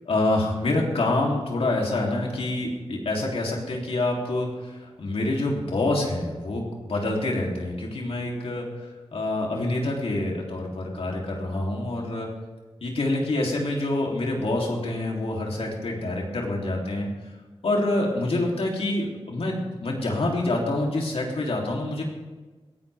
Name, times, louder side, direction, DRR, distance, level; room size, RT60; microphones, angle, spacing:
voice 1, 0.0-8.7 9.1-12.3 12.8-17.1 17.6-22.0, left 2 dB, 90° left, -1 dB, 3.1 m, -26 dB
20.5 x 16.0 x 3.5 m, 1.3 s
wide cardioid pair, 60°, 10 cm